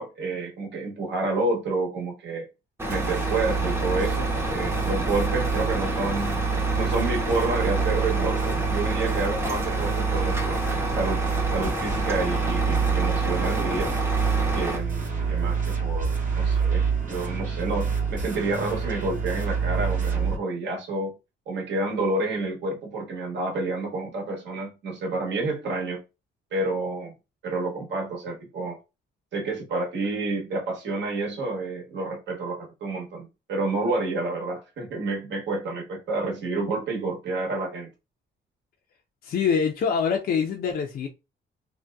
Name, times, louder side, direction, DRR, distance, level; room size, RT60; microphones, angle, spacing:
voice 1, 0.0-2.5 2.9-6.4 6.7-10.6 10.9-11.2 11.5-13.9 14.5-21.1 21.5-26.0 26.5-27.1 27.4-28.8 29.3-37.9, right 3 dB, 65° right, 1.0 m, -29 dB
Truck, 2.8-14.8, equal, 10° right, 0.6 m, -30 dB
sound 1, 2.9-20.4, right 6 dB, 40° right, 0.9 m, -27 dB
voice 2, 39.2-41.1, left 6 dB, 50° left, 0.4 m, -24 dB
2.6 x 2.1 x 2.2 m
cardioid pair, 90°, 20 cm